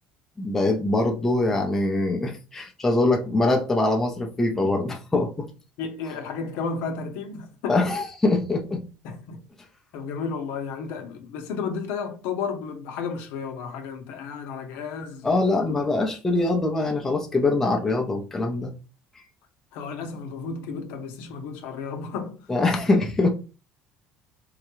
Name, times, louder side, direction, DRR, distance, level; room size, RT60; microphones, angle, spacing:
voice 1, 0.4-5.5 7.7-8.8 15.2-18.7 22.5-23.3, left 2 dB, 10° left, 0.6 m, -23 dB
voice 2, 5.8-7.8 9.0-9.4 9.9-15.8 19.7-22.4, left 5 dB, 75° left, 0.7 m, -33 dB
3.7 x 2.2 x 3.0 m
cardioid pair, 145°, 4 cm